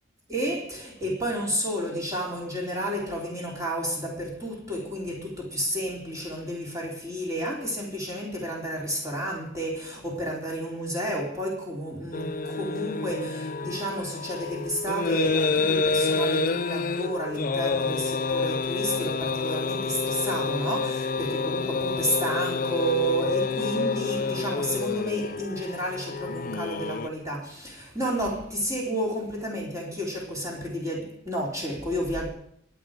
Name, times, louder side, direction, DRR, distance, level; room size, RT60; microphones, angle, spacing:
voice 1, 0.3-32.3, right 1 dB, 15° right, 3.7 m, -31 dB
sound 1, 12.1-27.1, left 4 dB, 40° left, 0.5 m, -28 dB
22.5 x 9.2 x 5.1 m
head